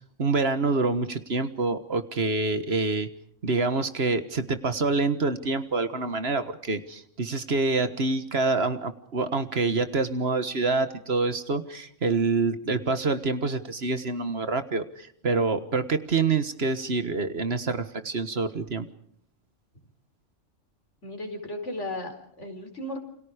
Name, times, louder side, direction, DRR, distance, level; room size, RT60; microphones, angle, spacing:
voice 1, 0.2-3.1 3.4-18.9, right 3 dB, 55° right, 10 dB, 1.7 m, -26 dB
voice 2, 21.0-23.0, left 1 dB, 70° left, 5 dB, 4.6 m, -35 dB
28.5 x 27.0 x 5.1 m, 0.67 s
omnidirectional pair, 1.3 m